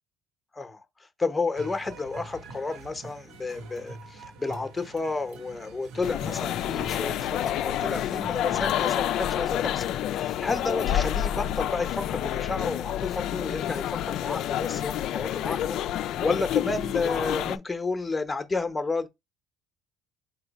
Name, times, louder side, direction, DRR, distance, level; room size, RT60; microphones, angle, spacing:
voice 1, 1.2-19.1, left 3 dB, 15° left, 0.9 m, -31 dB
sound 1, 1.6-9.0, right 2 dB, 70° right, 1.0 m, -45 dB
sound 2, 6.0-17.6, left 11 dB, 60° left, 0.4 m, -28 dB
4.2 x 2.3 x 4.1 m
supercardioid pair, 100°, 0 cm